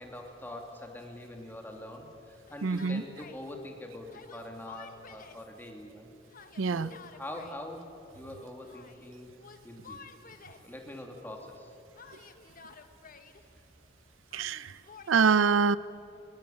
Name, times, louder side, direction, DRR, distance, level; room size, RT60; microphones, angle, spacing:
voice 1, 0.0-6.1 6.7-9.3 9.6-10.0 10.6-11.7 13.5-13.6, left 1 dB, 10° left, 2 dB, 2.6 m, -44 dB
Yell, 2.5-3.4 4.1-5.5 6.3-7.6 8.6-9.1 9.4-10.7 12.0-13.4 14.3-15.2, left 5 dB, 45° left, 1.3 m, -51 dB
voice 2, 2.6-3.0 6.6-6.9 14.3-14.7 15.1-15.8, right 5 dB, 80° right, 17 dB, 0.5 m, -25 dB
21.0 x 20.0 x 9.0 m, 2.7 s
head